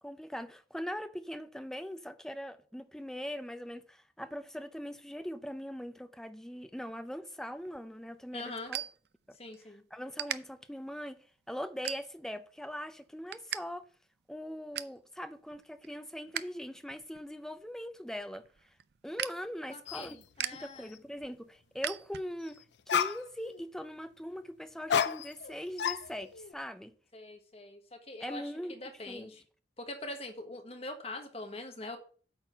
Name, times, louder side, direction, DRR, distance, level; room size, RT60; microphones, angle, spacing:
voice 1, 0.0-8.8 9.3-9.4 9.7-13.8 14.3-18.8 19.0-20.2 20.5-26.9 28.2-28.8 29.1-29.3, equal, 5° left, 0.5 m, -41 dB
sound 1, 7.6-9.6 10.1-10.4 10.9-11.2 11.8-12.4 12.8-13.6 13.9-14.0 14.4-15.0 15.5-16.6 16.9-22.6, right 10 dB, 65° right, 0.4 m, -40 dB
voice 2, 8.3-8.7 9.4-9.8 19.7-20.9 27.1-28.4 28.7-29.4 29.8-32.0, left 2 dB, 35° left, 1.4 m, -43 dB
sound 2, 19.9-20.1 20.5-21.0 22.5-22.6 22.9-23.6 24.9-25.5 25.8-26.5, left 8 dB, 75° left, 0.5 m, -32 dB
8.7 x 4.1 x 5.7 m
head